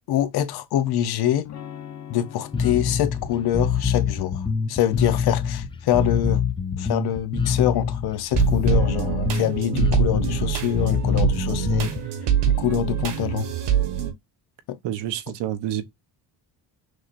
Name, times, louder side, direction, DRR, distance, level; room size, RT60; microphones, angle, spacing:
voice 1, 0.1-1.5 2.1-4.4 4.7-6.4 6.8-11.9 12.4-13.5 14.7-14.8, left 11 dB, 65° left, 0.9 m, -25 dB
Electric guitar / Strum, 1.4-7.2, left 10 dB, 40° left, 1.0 m, -44 dB
Bass guitar, 2.5-12.0, left 6 dB, 15° left, 0.4 m, -25 dB
sound 1, 8.3-14.1, right 10 dB, 70° right, 1.2 m, -24 dB
voice 2, 14.8-15.8, right 11 dB, 85° right, 0.9 m, -28 dB
6.3 x 3.1 x 2.5 m
cardioid pair, 150°, 42 cm